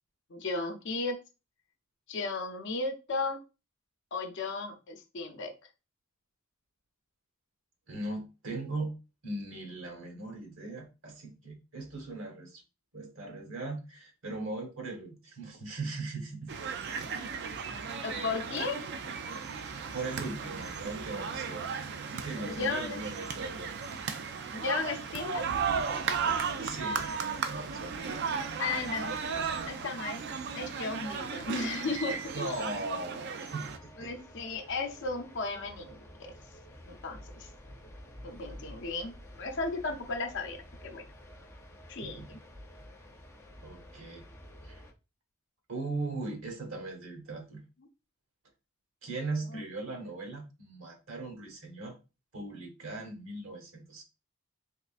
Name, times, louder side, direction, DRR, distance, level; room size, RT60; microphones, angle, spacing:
voice 1, 0.3-1.2 2.1-3.4 4.1-5.5 18.0-18.8 22.4-23.0 24.5-25.5 28.6-29.2 29.7-30.2 30.5-32.5 34.0-36.0 36.9-37.2 38.2-41.0 41.9-42.4 49.5-49.6, left 3 dB, 60° left, 5 dB, 0.6 m, -35 dB
voice 2, 7.9-9.0 9.2-12.6 12.9-16.8 19.9-21.7 22.1-23.7 26.6-29.0 29.3-29.5 32.3-33.6 34.0-34.1 42.0-42.3 43.6-44.3 44.6-44.8 45.7-47.6 49.0-52.0 52.3-54.0, right 2 dB, 70° right, 2 dB, 1.2 m, -39 dB
sound 1, 16.5-33.8, right 6 dB, 55° right, 0.4 m, -35 dB
sound 2, 33.5-44.9, equal, 10° left, 0.4 m, -50 dB
3.6 x 3.1 x 2.4 m, 0.29 s
head